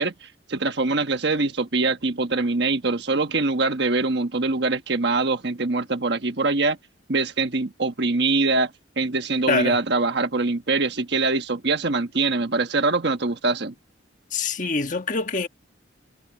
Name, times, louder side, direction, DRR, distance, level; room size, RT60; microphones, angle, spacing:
voice 1, 0.0-6.8 7.1-8.7 9.0-13.7, right 3 dB, 60° right, 1.3 m, -23 dB
voice 2, 14.3-15.5, left 4 dB, 40° left, 1.4 m, -24 dB
head